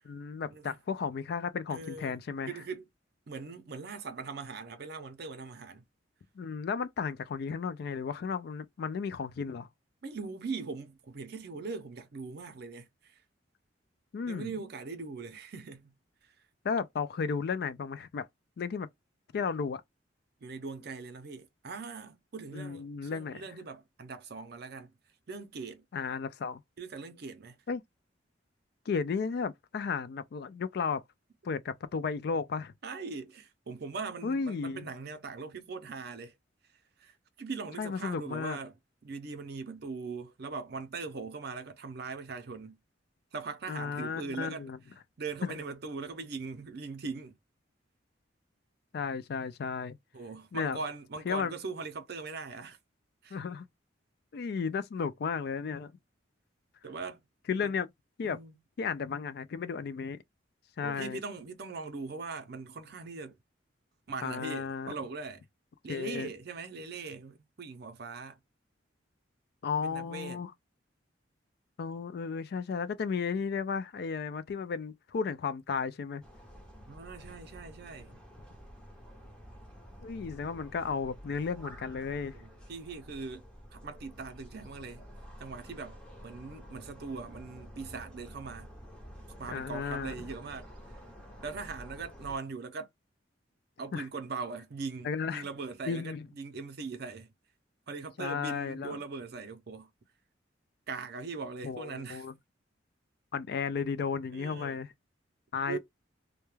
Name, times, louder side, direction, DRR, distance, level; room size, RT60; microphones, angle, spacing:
voice 1, 0.0-2.6 6.4-9.7 14.1-14.5 16.6-18.3 18.6-18.9 19.3-19.8 22.5-23.5 25.9-26.6 27.7-27.8 28.9-31.0 31.4-32.7 34.2-34.9 37.8-38.6 43.7-44.8 45.4-45.5 48.9-50.0 50.5-50.8 51.3-51.5 53.3-53.7 54.3-55.9 57.5-57.9 58.2-58.4 58.8-60.2 60.8-61.2 64.2-64.9 65.9-66.3 69.6-70.5 71.8-76.2 80.0-82.4 89.5-90.1 93.9-94.0 95.0-95.5 95.9-96.2 98.2-99.0 101.6-102.3 103.3-104.9 105.5-105.8, left 5 dB, 55° left, 0.3 m, -34 dB
voice 2, 1.7-2.1 2.5-2.8 3.3-5.8 10.0-13.2 14.3-15.9 20.4-22.8 23.1-24.9 25.3-25.8 26.8-27.6 32.8-36.3 37.0-38.7 39.0-42.8 43.3-44.6 45.2-47.4 50.1-52.8 53.2-53.4 56.8-57.2 57.6-57.7 58.2-58.6 60.8-63.4 64.1-65.5 65.8-68.4 69.8-70.4 76.9-78.2 82.4-83.4 83.7-85.0 85.4-86.0 86.2-88.7 89.4-90.7 91.4-92.9 93.8-97.3 97.9-99.9 100.9-102.3 104.3-104.8 105.7-105.8, right 4 dB, 55° right, 0.5 m, -40 dB
sound 1, 76.2-92.4, equal, 5° left, 0.6 m, -50 dB
2.2 x 2.1 x 3.0 m
head